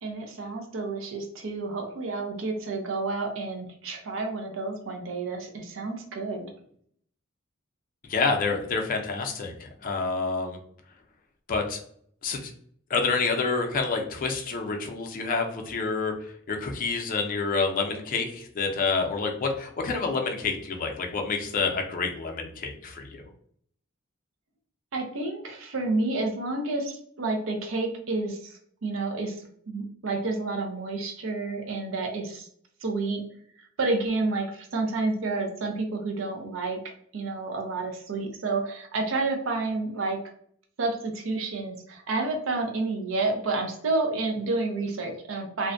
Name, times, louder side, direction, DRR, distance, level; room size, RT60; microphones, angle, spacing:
voice 1, 0.0-6.5 24.9-32.5 32.8-33.2 33.8-40.2 40.8-45.7, right 3 dB, 80° right, 3 dB, 0.5 m, -30 dB
voice 2, 8.0-10.6 11.5-11.8 12.2-12.5 12.9-23.2, left 4 dB, 45° left, 2 dB, 0.4 m, -28 dB
2.5 x 2.1 x 2.4 m, 0.63 s
head